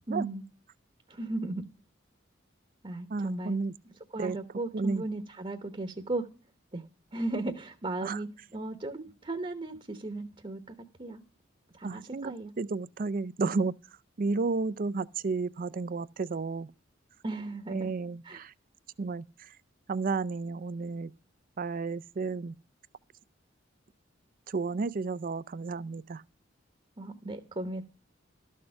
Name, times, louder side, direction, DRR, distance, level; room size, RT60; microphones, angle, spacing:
voice 1, 0.1-0.4 1.1-1.6 2.8-3.6 4.1-6.3 6.7-6.9 7.1-11.2 11.7-12.5 17.2-17.9 18.2-18.4 27.0-27.8, right 2 dB, 30° right, 1.0 m, -36 dB
voice 2, 3.1-3.7 4.2-4.4 4.7-5.0 8.0-8.2 11.8-13.7 14.2-16.7 17.7-18.5 19.0-19.5 19.9-21.1 21.6-22.5 24.5-26.2, right 4 dB, 45° right, 0.4 m, -32 dB
13.0 x 6.5 x 5.6 m
head